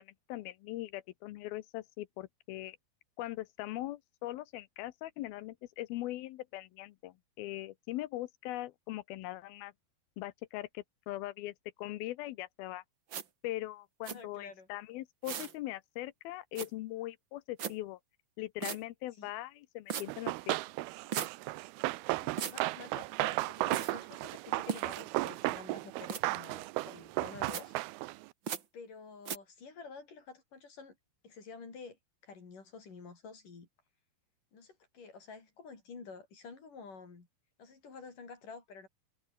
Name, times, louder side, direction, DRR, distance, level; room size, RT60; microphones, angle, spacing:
voice 1, 0.0-2.8 3.2-9.7 10.2-12.8 13.4-18.0 18.4-20.6, left 16 dB, 80° left, 2.6 m, -41 dB
sound 1, 13.1-13.2 14.0-14.2 15.2-15.5 16.5-16.7 17.6-17.7 18.6-18.8 19.9-20.0 21.1-21.3 22.4-22.6 23.7-23.9 24.7-25.0 26.1-26.2 27.5-27.6 28.5-28.6 29.2-29.4, right 8 dB, 55° right, 1.3 m, -37 dB
voice 2, 14.1-14.7 19.2-19.3 22.2-27.7 28.7-31.0 31.2-33.7 34.5-37.3 37.6-38.9, left 4 dB, 55° left, 6.3 m, -50 dB
Run, 20.1-28.3, right 20 dB, 85° right, 2.5 m, -35 dB
omnidirectional pair, 4.5 m